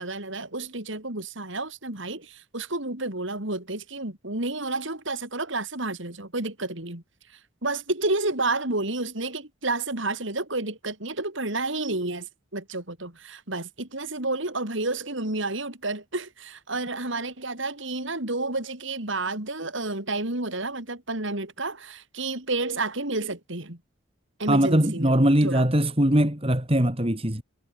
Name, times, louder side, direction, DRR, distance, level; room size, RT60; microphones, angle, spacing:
voice 1, 0.0-7.0 7.3-23.8 24.4-25.7, right 2 dB, 65° right, 3.9 m, -30 dB
voice 2, 24.5-27.4, right 1 dB, 30° right, 3.1 m, -21 dB
head